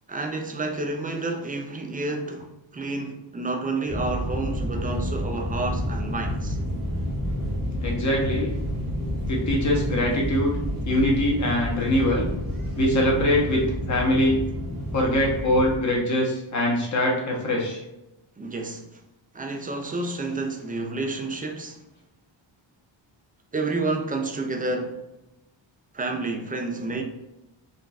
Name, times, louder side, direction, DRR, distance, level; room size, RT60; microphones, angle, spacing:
voice 1, 0.1-6.6 18.4-19.0 19.3-21.8 23.5-25.0 25.9-27.0, right 2 dB, 20° right, 2 dB, 0.3 m, -30 dB
sound 1, 3.9-15.8, equal, 45° right, 0.8 m, -29 dB
voice 2, 7.8-8.5 9.3-10.5 10.8-12.3 12.8-13.6 13.9-14.4 14.9-17.8, left 1 dB, 40° left, -2 dB, 0.9 m, -23 dB
3.9 x 2.5 x 2.3 m, 0.95 s
wide cardioid pair, 140°, 47 cm